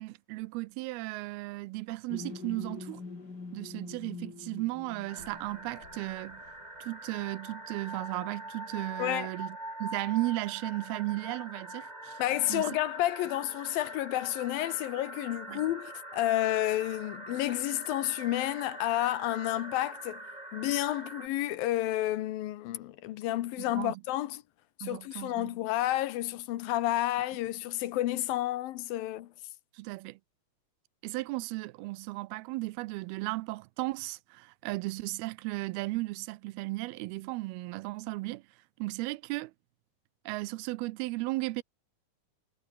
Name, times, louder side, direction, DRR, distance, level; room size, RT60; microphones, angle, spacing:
voice 1, 0.0-3.0 3.5-6.4 6.8-12.2 12.5-12.8 15.5-15.7 23.7-23.9 24.8-25.5 29.8-30.2 31.0-38.4 38.8-39.5 40.3-41.6, right 21 dB, 90° right, 2.6 m, -35 dB
sound 1, 2.1-6.9, left 4 dB, 25° left, 3.7 m, -45 dB
sound 2, 5.1-21.3, right 1 dB, 10° right, 4.2 m, -43 dB
voice 2, 9.0-9.3 12.2-20.2 20.5-24.4 24.8-29.3, left 15 dB, 75° left, 2.7 m, -30 dB
omnidirectional pair, 4.4 m